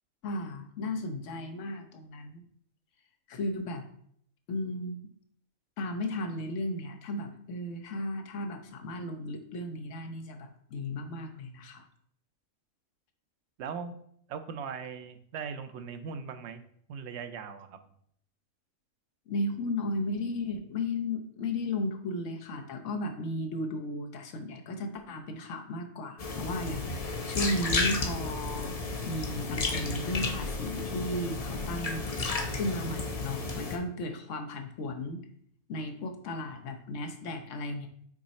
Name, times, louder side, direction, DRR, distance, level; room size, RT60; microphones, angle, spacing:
voice 1, 0.2-2.4 3.3-3.8 4.5-5.0 5.8-11.8 19.3-28.7 29.0-35.2 35.7-37.9, left 1 dB, 65° left, 5 dB, 1.1 m, -35 dB
voice 2, 13.6-14.0 14.3-16.6 16.9-17.8, right 6 dB, 60° right, 8 dB, 0.8 m, -39 dB
sound 1, 26.2-33.8, left 3 dB, 40° left, 0.5 m, -32 dB
6.2 x 3.9 x 4.2 m, 0.67 s
omnidirectional pair, 1.5 m